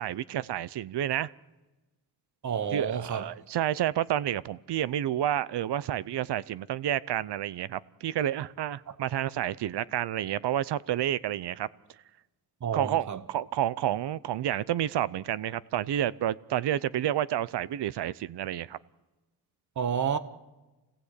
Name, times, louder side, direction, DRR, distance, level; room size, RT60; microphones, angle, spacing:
voice 1, 0.0-1.3 2.7-11.7 12.7-18.8, right 11 dB, 80° right, 0.7 m, -30 dB
voice 2, 2.4-3.3 12.6-13.2 19.8-20.2, right 7 dB, 45° right, 1.1 m, -30 dB
27.0 x 18.0 x 8.2 m
wide cardioid pair, 165°, 41 cm